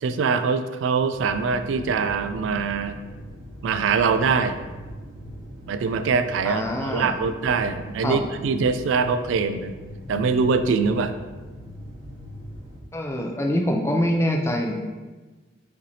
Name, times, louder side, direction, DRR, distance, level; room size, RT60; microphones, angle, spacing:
voice 1, 0.0-3.0 3.6-4.6 5.7-9.7 10.1-11.1, right 5 dB, 70° right, 9 dB, 0.3 m, -23 dB
sound 1, 1.1-12.8, equal, 90° right, 1.2 m, -40 dB
voice 2, 6.4-7.1 8.0-8.2 12.9-14.7, equal, 15° left, 1 dB, 0.4 m, -24 dB
5.0 x 3.2 x 2.7 m, 1.3 s
head